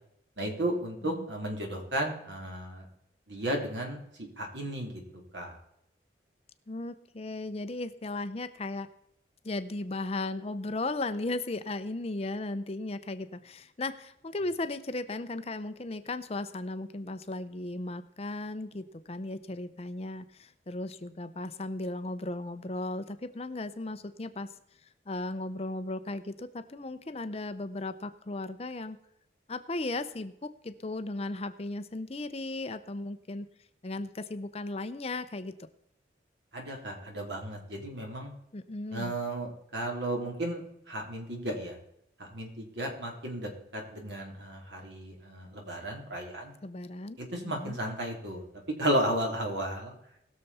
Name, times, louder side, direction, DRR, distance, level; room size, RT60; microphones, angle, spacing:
voice 1, 0.4-2.9 3.3-4.0 4.4-5.0 5.3-5.5 36.5-38.3 38.9-41.8 42.2-46.5 47.2-48.4 48.8-49.9, right 1 dB, 75° right, 1 dB, 3.2 m, -34 dB
voice 2, 6.7-8.9 9.4-24.5 25.1-29.0 29.5-33.5 33.8-35.6 38.5-39.1 46.6-47.2 47.4-47.8, left 2 dB, 35° left, 11 dB, 0.6 m, -36 dB
20.0 x 6.8 x 4.2 m, 0.77 s
head